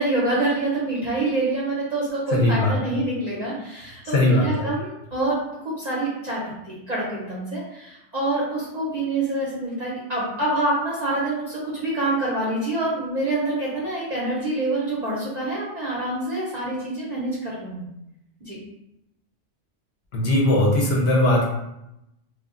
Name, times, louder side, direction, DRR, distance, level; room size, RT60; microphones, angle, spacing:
voice 1, 0.0-17.9 18.4-18.6, right 2 dB, 45° right, -6 dB, 0.6 m, -26 dB
voice 2, 2.3-3.0 4.1-4.7 20.1-21.4, left 1 dB, 65° left, -2 dB, 0.8 m, -19 dB
2.1 x 2.1 x 3.6 m, 0.87 s
omnidirectional pair, 1.3 m